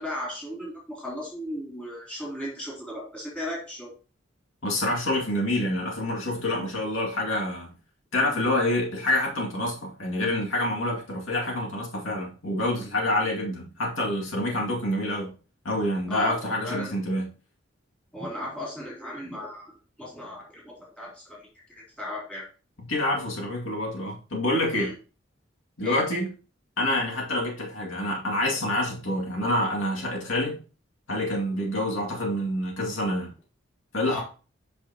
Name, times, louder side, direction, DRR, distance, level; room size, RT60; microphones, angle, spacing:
voice 1, 0.0-3.9 16.1-16.9 18.1-19.7 20.0-22.5 24.7-24.9 25.8-26.0 34.1-34.2, left 1 dB, 5° left, 3.5 m, -36 dB
voice 2, 4.6-7.7 8.1-15.3 15.6-17.3 22.8-24.9 25.8-26.3 26.8-30.6 31.1-33.3 33.9-34.2, left 1 dB, 90° left, 2.3 m, -27 dB
8.3 x 5.8 x 2.9 m
head